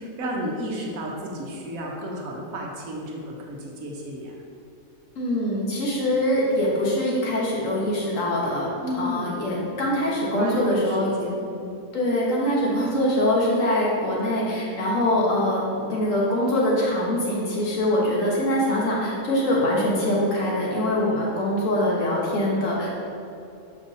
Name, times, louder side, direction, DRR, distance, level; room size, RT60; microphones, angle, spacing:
voice 1, 0.0-4.3 8.8-9.3 10.4-11.7, equal, 70° right, -1 dB, 1.3 m, -33 dB
voice 2, 5.1-8.7 8.9-11.1 11.9-22.9, left 1 dB, 65° left, -4 dB, 1.6 m, -23 dB
6.8 x 5.2 x 2.7 m, 2.8 s
omnidirectional pair, 1.5 m